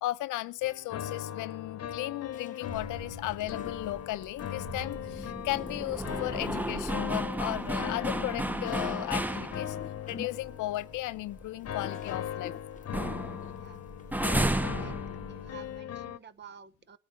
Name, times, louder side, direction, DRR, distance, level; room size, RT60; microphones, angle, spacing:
voice 1, 0.0-9.8 10.1-12.5, left 16 dB, 90° left, 0.7 m, -35 dB
sound 1, 0.6-16.2, left 10 dB, 55° left, 1.0 m, -39 dB
sound 2, 2.3-14.4, left 5 dB, 25° left, 0.9 m, -50 dB
sound 3, 2.7-10.0 10.4-10.5 10.9-12.5 12.8-15.8, right 1 dB, 5° right, 0.6 m, -34 dB
voice 2, 14.3-15.0 15.3-17.0, right 7 dB, 35° right, 0.9 m, -51 dB
21.0 x 9.5 x 3.3 m
cardioid pair, 90°, 30 cm